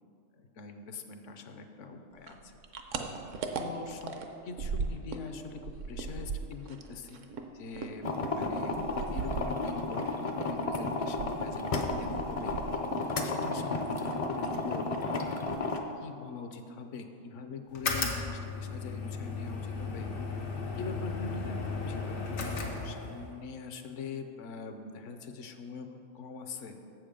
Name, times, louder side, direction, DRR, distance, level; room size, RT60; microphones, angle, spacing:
voice 1, 0.3-2.6 3.5-4.1 4.4-7.3 7.5-8.8 9.1-11.7 12.0-12.6 13.2-15.5 16.0-20.1 20.8-26.8, left 4 dB, 70° left, 7 dB, 1.0 m, -43 dB
sound 1, 2.2-5.3 5.5-10.0 10.4-13.1 13.4-14.1 14.4-14.6 15.0-15.1 15.3-15.9, right 5 dB, 75° right, 1.0 m, -38 dB
sound 2, 8.0-15.8, left 2 dB, 50° left, 0.4 m, -33 dB
sound 3, 17.7-23.4, left 4 dB, 90° left, 1.4 m, -35 dB
7.5 x 7.2 x 5.0 m, 2.6 s
omnidirectional pair, 1.3 m